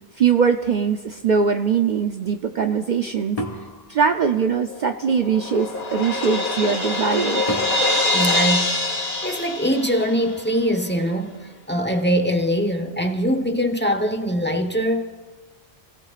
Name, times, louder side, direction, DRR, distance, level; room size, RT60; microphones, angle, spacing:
voice 1, 0.2-3.4 3.9-7.5, right 6 dB, 55° right, 0.6 m, -21 dB
sound 1, 3.4-4.9 7.5-9.3, equal, 35° left, 1.6 m, -34 dB
Crash cymbal, 4.7-10.4, left 2 dB, 70° left, 3.0 m, -24 dB
voice 2, 8.1-8.8 9.2-15.0, equal, 10° left, 1.0 m, -22 dB
29.5 x 16.5 x 2.5 m
omnidirectional pair, 1.1 m